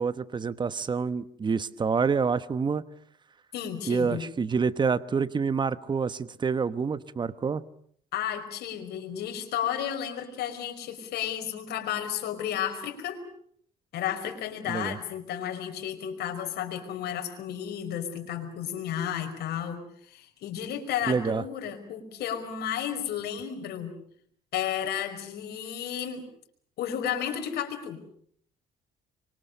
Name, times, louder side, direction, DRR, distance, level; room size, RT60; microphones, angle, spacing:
voice 1, 0.0-2.8 3.9-7.6 14.7-15.0 21.1-21.4, right 5 dB, 25° right, 14 dB, 1.1 m, -27 dB
voice 2, 3.5-4.3 8.1-13.2 13.9-19.8 20.1-23.9 24.5-26.2 26.8-28.0, left 9 dB, 75° left, 6 dB, 5.1 m, -32 dB
26.0 x 24.0 x 6.8 m, 0.64 s
cardioid pair, 110°, 17 cm